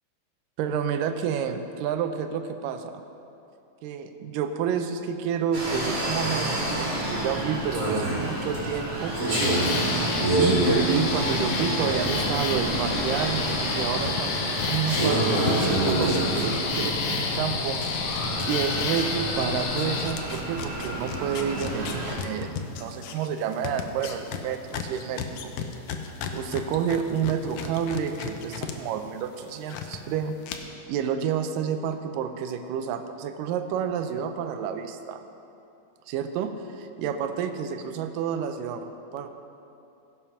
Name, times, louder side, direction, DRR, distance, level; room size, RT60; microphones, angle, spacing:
voice 1, 0.6-3.0 3.8-9.2 10.1-17.8 18.5-25.5 26.3-35.2 36.1-39.3, right 7 dB, 90° right, 8 dB, 2.3 m, -30 dB
sound 1, 5.5-22.1, right 1 dB, 50° right, 4.1 m, -28 dB
sound 2, 9.3-20.1, left 5 dB, 65° left, 2.0 m, -30 dB
sound 3, 13.4-17.0 17.3-28.7 29.1-30.0 30.4-30.6, left 7 dB, 85° left, 1.3 m, -36 dB
16.0 x 7.4 x 5.6 m, 2.7 s
omnidirectional pair, 3.8 m